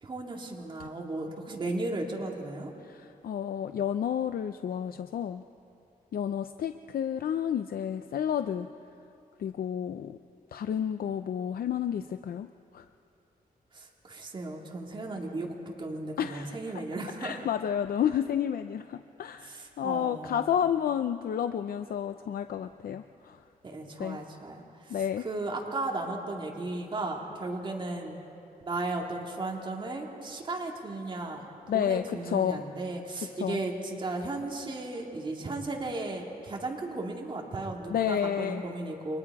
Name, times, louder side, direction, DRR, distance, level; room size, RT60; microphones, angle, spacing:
voice 1, 0.0-2.7 13.7-15.5 15.8-17.4 19.4-20.6 23.6-25.0 25.2-28.2 28.6-31.5 31.7-39.2, right 2 dB, 35° right, 0 dB, 2.3 m, -35 dB
voice 2, 2.8-5.4 6.1-8.7 9.4-10.2 10.5-12.5 12.7-12.9 16.2-16.8 17.2-23.4 24.0-24.2 24.9-25.3 31.7-32.6 33.4-33.6 37.9-38.6, left 9 dB, 80° left, 9 dB, 0.6 m, -31 dB
29.5 x 24.5 x 4.8 m, 2.6 s
wide cardioid pair, 170°, 15 cm